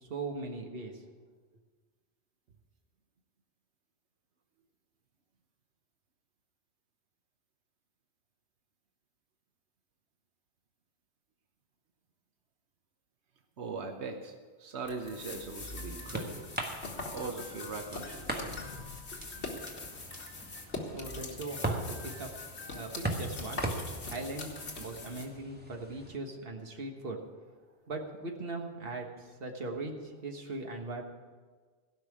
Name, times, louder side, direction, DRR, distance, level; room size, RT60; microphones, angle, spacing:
voice 1, 0.0-1.0 20.9-22.3 22.7-23.6 24.0-27.2 27.9-31.1, right 2 dB, 60° right, 2 dB, 1.6 m, -40 dB
voice 2, 13.6-16.5 17.1-18.6, right 4 dB, 85° right, 4 dB, 1.3 m, -40 dB
sound 1, 14.9-25.3, left 3 dB, 85° left, 1.8 m, -42 dB
sound 2, 15.4-26.2, right 1 dB, 10° right, 1.4 m, -40 dB
sound 3, 16.1-17.0 17.9-18.4 19.2-20.5, right 2 dB, 30° right, 1.4 m, -56 dB
16.5 x 5.8 x 8.4 m, 1.5 s
omnidirectional pair, 1.1 m